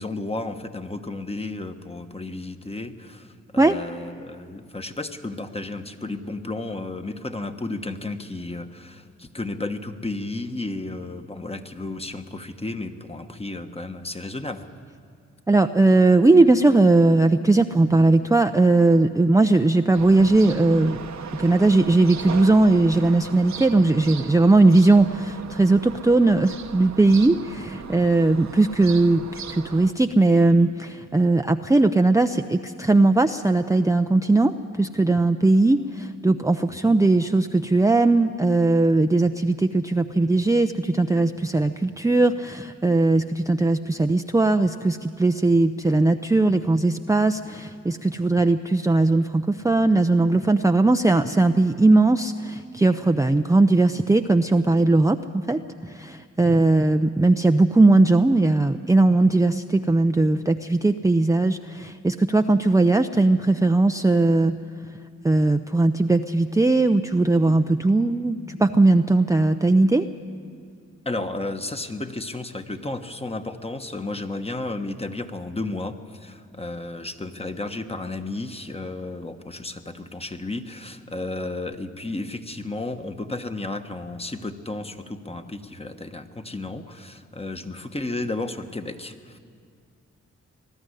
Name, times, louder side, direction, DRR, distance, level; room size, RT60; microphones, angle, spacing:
voice 1, 0.0-14.7 36.7-37.0 71.0-89.4, left 2 dB, 20° left, 7 dB, 1.3 m, -33 dB
voice 2, 15.5-21.0 21.4-55.6 55.9-64.5 65.2-70.1, right 2 dB, 10° right, 6 dB, 0.6 m, -19 dB
sound 1, 19.9-29.9, right 7 dB, 65° right, 1.0 m, -38 dB
21.0 x 13.0 x 9.9 m, 2.2 s
cardioid pair, 60°, 30 cm